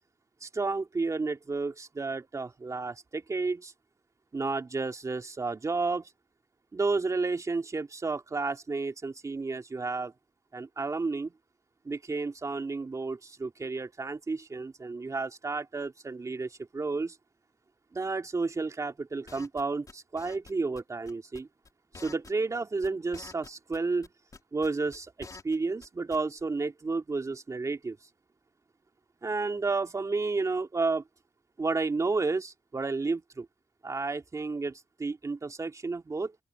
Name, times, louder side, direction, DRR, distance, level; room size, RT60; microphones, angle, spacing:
voice 1, 0.4-3.7 4.3-6.1 6.7-10.1 10.5-11.3 11.8-17.2 17.9-21.5 21.9-24.1 24.5-28.0 29.2-31.0 31.6-33.5 33.8-36.4, right 3 dB, 50° right, 2.6 m, -31 dB
sound 1, 19.3-19.6 19.9-20.5 20.8-20.9 21.1-21.7 21.9-22.6 22.8-23.8 24.0-25.6 25.8-25.9 26.1-26.4, left 4 dB, 55° left, 3.5 m, -48 dB
open air
cardioid pair, 50°, 7 cm